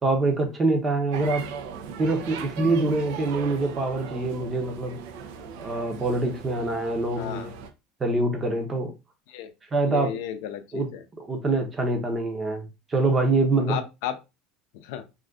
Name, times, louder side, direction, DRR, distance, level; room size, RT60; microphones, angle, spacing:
voice 1, 0.0-1.4 2.0-5.0 5.6-7.6 8.0-8.9 9.7-10.1 10.7-10.9 11.1-13.8, right 2 dB, 20° right, 0.7 m, -25 dB
sound 1, 1.1-7.7, right 6 dB, 80° right, 0.5 m, -38 dB
voice 2, 7.1-7.5 9.3-9.5 9.8-11.0 13.7-14.2 14.7-15.0, left 10 dB, 80° left, 0.4 m, -33 dB
2.5 x 2.4 x 3.4 m
cardioid pair, 155°, 0 cm